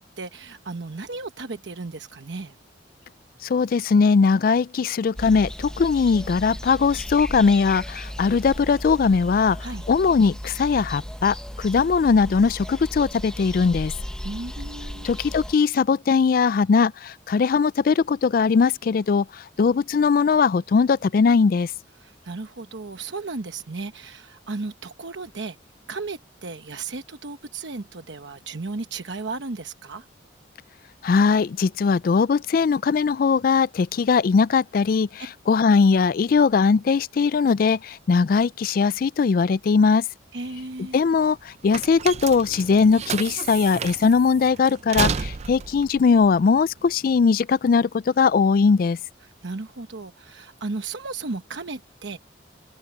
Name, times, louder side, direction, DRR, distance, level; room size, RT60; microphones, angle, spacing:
voice 1, 0.0-2.5 9.6-9.9 14.2-15.1 22.0-25.6 25.9-30.1 40.3-41.0 49.2-52.2, right 3 dB, 80° right, 1.0 m, -35 dB
voice 2, 3.4-9.6 9.9-13.9 15.0-21.7 31.0-40.0 40.9-49.0, left 5 dB, 50° left, 0.3 m, -20 dB
sound 1, 5.2-15.5, equal, 5° left, 0.9 m, -36 dB
sound 2, 40.5-47.2, right 6 dB, 35° right, 0.4 m, -31 dB
head